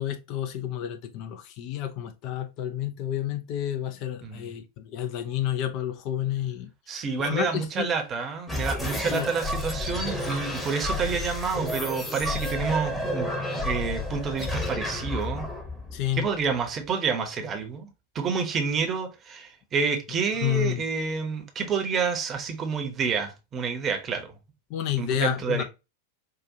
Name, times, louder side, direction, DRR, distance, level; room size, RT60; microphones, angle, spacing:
voice 1, 0.0-7.9 9.1-9.3 15.9-16.3 20.4-20.8 24.7-25.6, left 11 dB, 40° left, 0.5 m, -30 dB
voice 2, 4.2-4.5 6.9-13.3 13.6-15.5 16.2-24.3 25.0-25.6, right 5 dB, 25° right, 0.9 m, -29 dB
sound 1, 8.5-16.7, left 1 dB, 5° left, 1.0 m, -31 dB
4.8 x 2.4 x 2.7 m
figure-of-eight pair, 90°, 0 cm